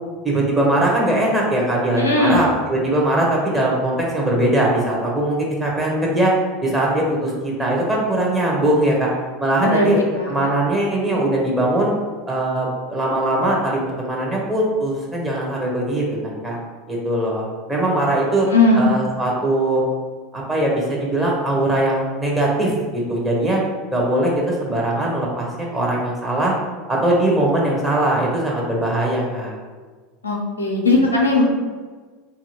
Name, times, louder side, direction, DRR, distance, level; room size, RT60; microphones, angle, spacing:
voice 1, 0.2-6.3 6.6-9.1 9.4-11.9 12.3-16.6 16.9-18.5 18.7-19.8 20.3-23.6 23.9-26.5 26.9-29.6, right 1 dB, 10° right, -4 dB, 0.9 m, -20 dB
voice 2, 2.0-2.4 9.6-9.9 10.1-10.5 18.5-18.8 30.2-31.4, left 2 dB, 85° left, -1 dB, 0.5 m, -18 dB
2.8 x 2.7 x 2.8 m, 1.4 s
figure-of-eight pair, 80°, 0 cm